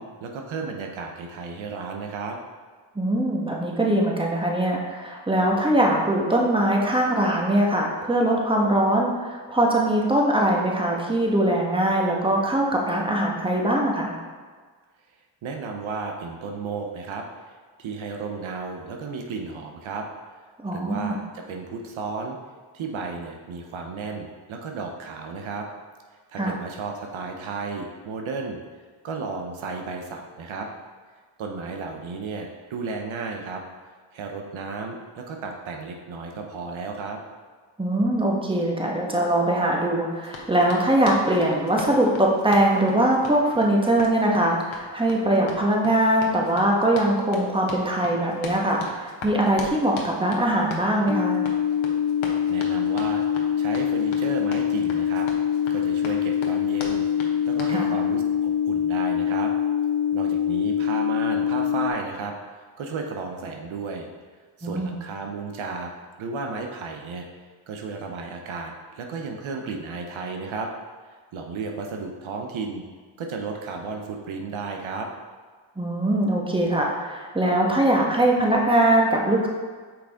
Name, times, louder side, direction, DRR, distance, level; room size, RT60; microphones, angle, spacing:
voice 1, 0.0-2.4 15.4-17.2 17.8-20.1 20.7-22.4 22.7-25.7 26.3-28.6 29.0-30.7 31.4-33.6 34.1-37.2 52.5-55.3 55.7-57.1 57.5-59.5 60.1-62.3 62.8-64.1 64.6-65.9 66.2-67.3 67.7-70.7 71.3-72.8 73.2-75.1, right 4 dB, 80° right, 3 dB, 0.8 m, -33 dB
voice 2, 2.9-14.1 20.6-21.2 26.4-26.5 37.8-51.4 57.7-57.9 64.6-65.0 75.8-79.5, right 1 dB, 10° right, -1 dB, 1.3 m, -22 dB
Run, 40.2-57.8, left 4 dB, 80° left, 1.1 m, -39 dB
sound 1, 51.1-61.9, left 9 dB, 60° left, 0.6 m, -24 dB
6.1 x 4.9 x 3.6 m, 1.5 s
cardioid pair, 55°, 47 cm